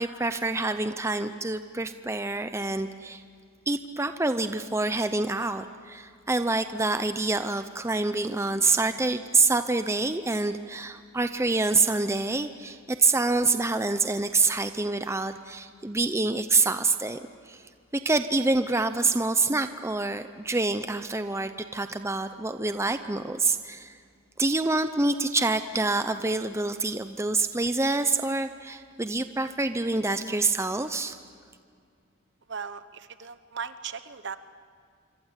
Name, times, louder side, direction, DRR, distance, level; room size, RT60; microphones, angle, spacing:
voice 1, 0.0-3.2 3.7-17.2 17.5-17.6 17.9-24.0 24.4-31.2, right 3 dB, 15° right, 9 dB, 0.7 m, -26 dB
voice 2, 32.5-34.4, right 6 dB, 55° right, 12 dB, 1.0 m, -37 dB
27.0 x 24.5 x 8.2 m, 2.2 s
head